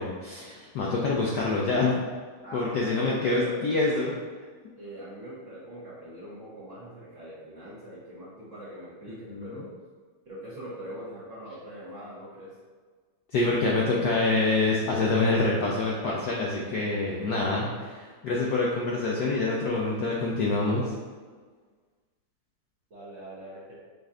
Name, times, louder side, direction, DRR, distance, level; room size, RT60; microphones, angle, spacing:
voice 1, 0.0-2.0 2.5-4.1 9.3-9.5 13.3-20.9, left 3 dB, 75° left, -3 dB, 0.9 m, -26 dB
voice 2, 2.4-4.1 4.8-9.7 10.2-12.5 22.9-23.7, right 1 dB, 50° right, -8 dB, 0.9 m, -42 dB
5.3 x 2.5 x 3.5 m, 1.5 s
omnidirectional pair, 2.3 m